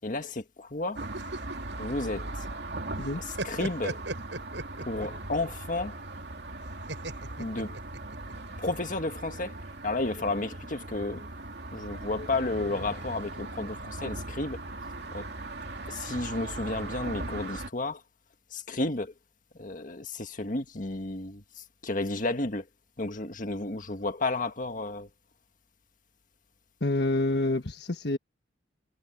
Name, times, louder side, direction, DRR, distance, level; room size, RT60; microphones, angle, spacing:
voice 1, 0.0-1.0 1.8-2.3 3.2-4.0 4.9-6.0 7.4-7.8 8.6-9.6 9.8-11.3 11.7-14.6 15.1-15.3 15.9-18.0 18.5-19.1 19.6-21.4 21.8-22.6 23.0-25.1, left 2 dB, 45° left, 1.7 m, -32 dB
sound 1, 1.0-17.7, right 2 dB, 65° right, 2.6 m, -39 dB
sound 2, 1.0-2.7 3.0-5.2 6.9-8.3, right 2 dB, 90° right, 7.3 m, -37 dB
voice 2, 26.8-28.2, left 2 dB, 65° left, 1.4 m, -27 dB
head